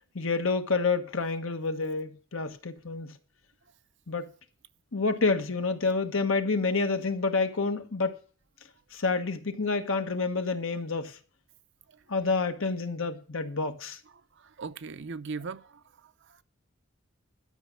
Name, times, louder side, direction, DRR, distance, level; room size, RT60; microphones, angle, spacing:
voice 1, 0.1-3.2 4.1-4.3 4.9-8.2 8.9-11.2 12.1-14.0, left 4 dB, 75° left, 1.3 m, -28 dB
voice 2, 14.1-16.4, right 4 dB, 60° right, 0.7 m, -40 dB
11.5 x 6.3 x 7.0 m
head